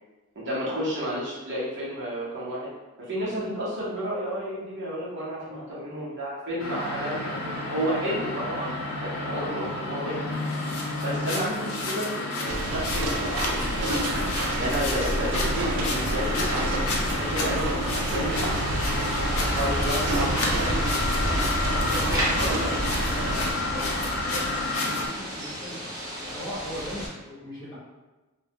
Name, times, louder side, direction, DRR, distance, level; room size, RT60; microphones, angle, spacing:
voice 1, 0.3-2.7 3.0-10.2 11.0-13.7 14.3-16.8 17.1-18.6 19.5-20.5 21.2-21.4 22.4-22.5, equal, 55° right, -7 dB, 0.8 m, -31 dB
sound 1, 6.6-25.1, left 2 dB, 70° left, 0.4 m, -30 dB
sound 2, 12.5-23.5, right 1 dB, 85° right, 0.4 m, -29 dB
sound 3, 18.3-27.1, equal, 15° right, 0.5 m, -33 dB
voice 2, 19.1-21.3 21.8-25.9 26.2-27.8, equal, 20° left, -9 dB, 0.9 m, -39 dB
2.2 x 2.1 x 2.7 m, 1.2 s
head